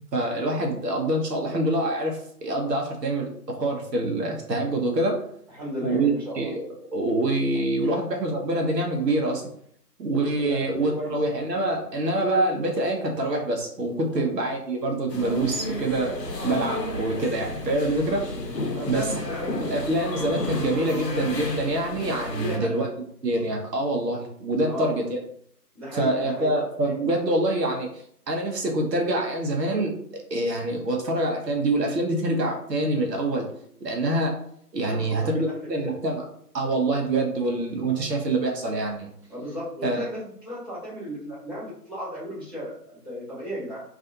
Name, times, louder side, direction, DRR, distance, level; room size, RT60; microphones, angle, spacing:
voice 1, 0.1-5.2 5.8-9.4 10.0-16.2 16.4-18.3 18.9-19.0 19.4-22.9 23.2-25.2 25.9-27.9 28.3-29.9 30.3-33.5 33.8-34.3 34.7-36.3 36.5-39.1 39.8-40.0, right 1 dB, 80° right, 1 dB, 0.8 m, -25 dB
voice 2, 5.6-6.5 7.8-8.0 10.4-11.1 14.1-14.3 18.7-19.5 22.3-22.8 24.6-25.0 25.7-26.5 34.8-36.0 39.3-43.8, equal, 15° right, -16 dB, 0.9 m, -35 dB
sound 1, 15.1-22.6, left 1 dB, 80° left, 0.8 m, -32 dB
2.4 x 2.4 x 2.6 m, 0.67 s
figure-of-eight pair, 155°, 49 cm